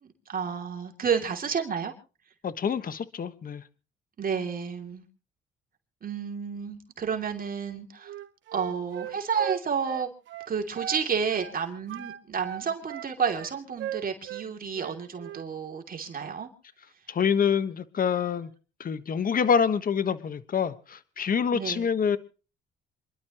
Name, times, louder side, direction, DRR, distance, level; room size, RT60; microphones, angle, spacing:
voice 1, 0.0-1.9 4.2-5.0 6.0-8.1 8.5-10.1 10.5-16.5 21.5-21.9, right 6 dB, 45° right, 4 dB, 2.9 m, -31 dB
voice 2, 2.4-3.6 17.1-18.5 18.8-22.2, left 7 dB, 45° left, 13 dB, 1.3 m, -26 dB
Wind instrument woodwind instrument, 8.0-11.0 11.3-11.6 11.9-14.5 14.7-15.5, right 11 dB, 70° right, 1.2 m, -38 dB
27.5 x 12.0 x 3.0 m, 0.35 s
cardioid pair, 90°, 20 cm